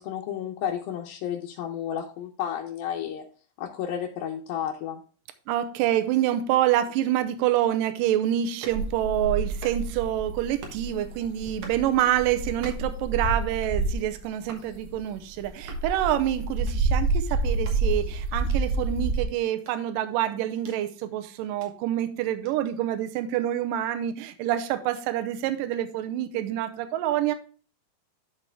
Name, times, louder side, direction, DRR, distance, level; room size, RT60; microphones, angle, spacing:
voice 1, 0.0-3.2 3.6-5.0, left 9 dB, 75° left, -1 dB, 2.4 m, -32 dB
voice 2, 5.5-27.3, right 12 dB, 80° right, 9 dB, 2.0 m, -27 dB
sound 1, 8.5-8.8 9.5-10.0 10.5-10.9 11.4-11.9 12.5-13.0 13.5-13.8 14.4-14.7 15.5-15.9 16.5-16.8 17.5-17.8 18.4-18.6 19.5-20.8 21.4-21.7 22.4-22.6, right 4 dB, 60° right, 1.8 m, -46 dB
sound 2, 8.7-14.2 14.7-19.2, right 3 dB, 45° right, 0.9 m, -28 dB
12.5 x 4.2 x 3.3 m, 0.40 s
omnidirectional pair, 4.6 m